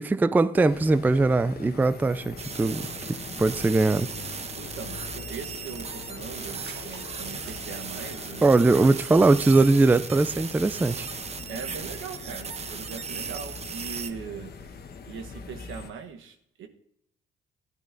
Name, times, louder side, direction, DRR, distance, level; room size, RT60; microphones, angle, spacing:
voice 1, 0.0-2.9 3.4-4.1 8.4-11.1, right 3 dB, 10° right, 0.3 m, -21 dB
sound 1, 0.5-15.9, left 5 dB, 50° left, 1.1 m, -42 dB
sound 2, 2.4-14.1, right 5 dB, 35° right, 0.7 m, -37 dB
voice 2, 4.6-9.0 11.5-14.5 15.1-16.7, right 6 dB, 80° right, 1.1 m, -40 dB
sound 3, 5.4-13.3, right 4 dB, 60° right, 1.8 m, -53 dB
15.5 x 11.0 x 2.6 m
cardioid pair, 90°, 20 cm